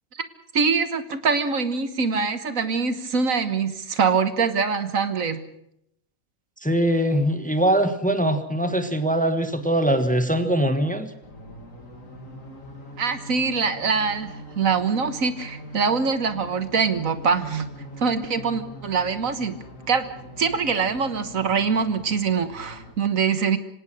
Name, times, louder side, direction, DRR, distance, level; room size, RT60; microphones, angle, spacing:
voice 1, 0.5-5.4 13.0-17.7 18.0-19.6 19.9-20.1 20.4-23.6, right 5 dB, 65° right, 11 dB, 1.7 m, -24 dB
voice 2, 6.6-11.1, right 1 dB, 5° left, 9 dB, 1.4 m, -22 dB
sound 1, 11.2-22.9, left 1 dB, 65° left, 3.1 m, -42 dB
26.0 x 17.5 x 6.3 m, 0.75 s
omnidirectional pair, 1.5 m